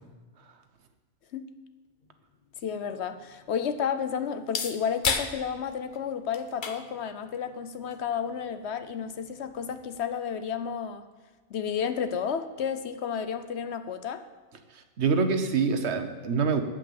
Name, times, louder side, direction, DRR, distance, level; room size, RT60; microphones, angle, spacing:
sound 1, 2.0-10.0, left 5 dB, 50° left, 0.9 m, -38 dB
voice 1, 2.6-11.0 11.5-14.2, left 7 dB, 75° left, 10 dB, 1.0 m, -32 dB
voice 2, 14.7-16.6, right 5 dB, 75° right, 8 dB, 1.2 m, -25 dB
8.7 x 8.3 x 7.5 m, 1.4 s
omnidirectional pair, 1.1 m